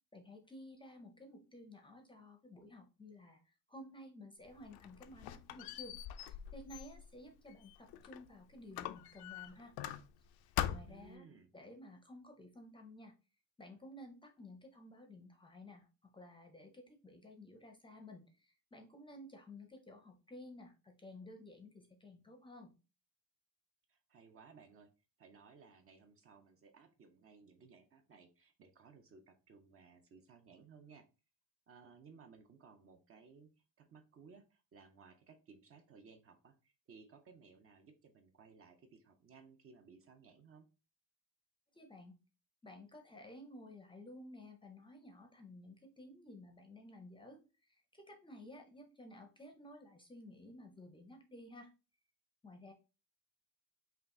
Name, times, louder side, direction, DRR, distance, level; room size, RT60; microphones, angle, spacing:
voice 1, 0.1-9.7 10.7-11.3 11.5-13.1 13.6-22.7 41.7-42.1 42.6-51.7 52.4-52.7, left 1 dB, 15° left, 5 dB, 0.6 m, -54 dB
Squeak, 4.5-8.3 8.7-10.3 10.6-11.1, left 12 dB, 70° left, 0.5 m, -43 dB
voice 2, 10.9-11.5 23.9-24.9 25.2-31.1 31.7-40.7, right 5 dB, 35° right, 6 dB, 0.6 m, -60 dB
5.6 x 2.4 x 3.7 m, 0.30 s
cardioid pair, 160°, 39 cm